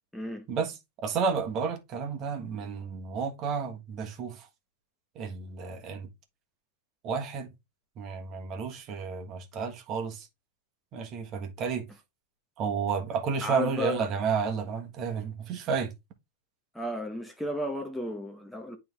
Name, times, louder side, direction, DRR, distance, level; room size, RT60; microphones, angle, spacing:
voice 1, 0.1-0.4 13.4-14.1 16.7-18.8, left 1 dB, 5° left, 0.9 m, -33 dB
voice 2, 1.0-4.5 5.1-6.1 7.0-7.5 8.0-10.3 10.9-11.8 12.6-15.9, right 6 dB, 35° right, 1.4 m, -31 dB
9.1 x 3.6 x 3.3 m
hypercardioid pair, 120°, 0 cm